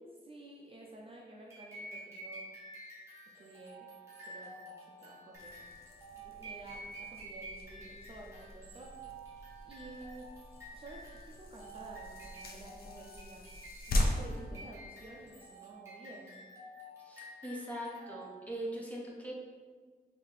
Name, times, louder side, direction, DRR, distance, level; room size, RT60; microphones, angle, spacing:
voice 1, 0.2-2.4 3.4-3.9 4.2-5.7 6.2-9.0 9.7-10.4 10.7-13.5 13.9-16.4, right 2 dB, 35° right, -2 dB, 0.4 m, -51 dB
sound 1, 1.5-18.5, right 1 dB, 15° right, 1.1 m, -50 dB
sound 2, 5.3-15.5, left 1 dB, 60° left, 0.5 m, -40 dB
voice 2, 14.3-14.6 17.0-19.3, equal, 10° left, -4 dB, 0.6 m, -41 dB
4.0 x 2.7 x 3.2 m, 1.6 s
wide cardioid pair, 160°, 17 cm